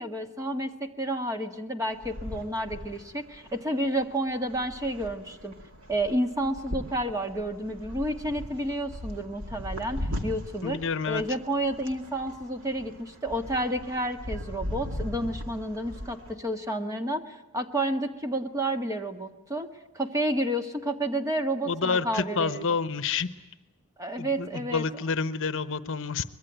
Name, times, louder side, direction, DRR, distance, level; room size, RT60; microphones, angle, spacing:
voice 1, 0.0-5.5 5.9-10.8 11.1-19.7 19.9-22.7 24.0-24.8, right 1 dB, 15° right, 5 dB, 1.7 m, -30 dB
sound 1, 1.9-16.3, left 1 dB, 65° right, 2.5 m, -39 dB
voice 2, 10.6-11.2 21.7-23.3 24.2-26.2, left 5 dB, 60° left, 13 dB, 1.0 m, -28 dB
24.0 x 22.0 x 9.1 m, 0.98 s
head